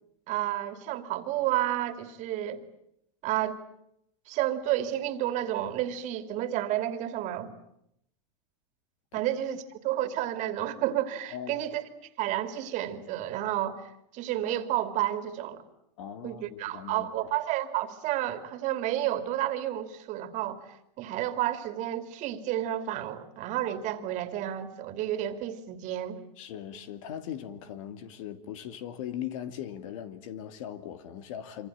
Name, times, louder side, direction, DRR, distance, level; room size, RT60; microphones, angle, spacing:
voice 1, 0.3-2.6 3.2-3.6 4.3-7.5 9.1-11.8 12.2-15.6 16.2-20.6 21.0-26.2, right 13 dB, 45° right, 2.8 m, -31 dB
voice 2, 11.3-11.6 16.0-17.1 26.4-31.7, left 10 dB, 70° left, 2.6 m, -39 dB
26.0 x 25.0 x 9.0 m
supercardioid pair, 130°, 18 cm